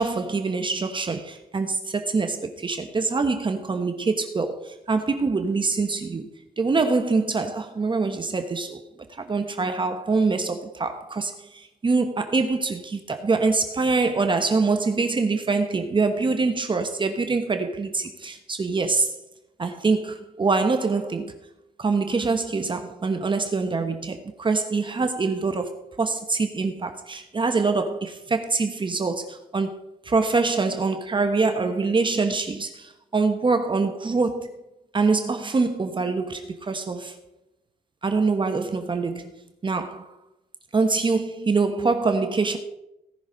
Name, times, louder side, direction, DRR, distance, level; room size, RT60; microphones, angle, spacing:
voice 1, 0.0-6.3 6.6-8.8 9.3-19.1 19.6-21.3 21.8-29.8 30.0-34.5 34.9-37.2 38.0-39.3 39.6-40.1 40.7-42.6, right 4 dB, 30° right, 1.1 m, -24 dB
18.0 x 6.1 x 4.0 m
cardioid pair, 100°, 16 cm